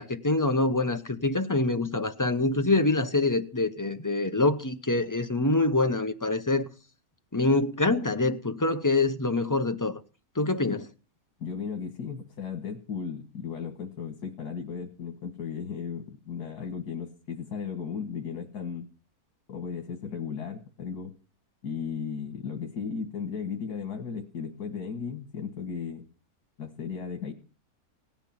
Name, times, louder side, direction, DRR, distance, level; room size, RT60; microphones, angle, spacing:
voice 1, 0.0-6.6 7.3-10.0 10.4-10.9, left 2 dB, 20° left, 0.6 m, -25 dB
voice 2, 11.4-18.9 19.5-21.1 21.6-26.0 26.6-27.3, left 6 dB, 85° left, 2.2 m, -35 dB
17.5 x 10.0 x 5.8 m
omnidirectional pair, 1.6 m